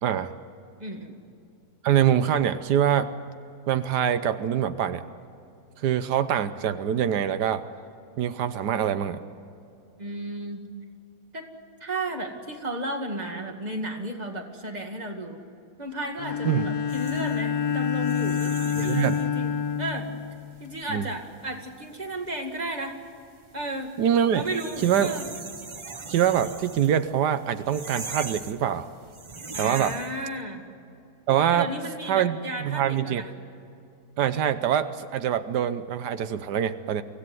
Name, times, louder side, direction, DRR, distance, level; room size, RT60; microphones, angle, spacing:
voice 1, 0.0-0.3 1.8-3.1 3.7-5.0 5.8-7.6 8.2-9.2 16.4-16.6 18.8-19.2 20.9-21.1 24.0-24.4 24.8-25.1 26.1-28.9 29.6-30.0 31.3-31.7 32.1-33.2 34.2-37.0, right 9 dB, 85° right, 11 dB, 1.4 m, -24 dB
voice 2, 0.8-1.2 10.0-10.7 11.3-11.5 11.8-15.4 15.8-20.1 20.6-23.0 23.5-24.0 24.3-25.3 29.5-30.7 31.5-33.3, right 1 dB, 25° right, 3 dB, 2.2 m, -33 dB
Bowed string instrument, 16.2-20.8, left 7 dB, 70° left, 1.6 m, -28 dB
sound 1, 16.9-30.3, right 4 dB, 45° right, 0.4 m, -42 dB
24.5 x 16.5 x 9.5 m, 2.6 s
omnidirectional pair, 1.7 m